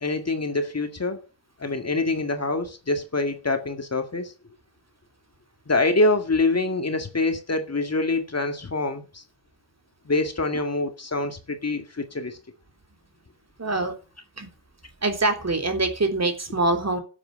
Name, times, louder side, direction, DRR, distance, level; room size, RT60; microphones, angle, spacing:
voice 1, 0.0-1.2 1.6-4.3 5.7-9.2 10.1-12.4, left 2 dB, 35° left, 2.0 m, -25 dB
voice 2, 13.6-14.0 14.4-14.5 15.0-17.0, right 2 dB, 35° right, 3.5 m, -24 dB
12.0 x 8.0 x 9.8 m
wide cardioid pair, 85°, 43 cm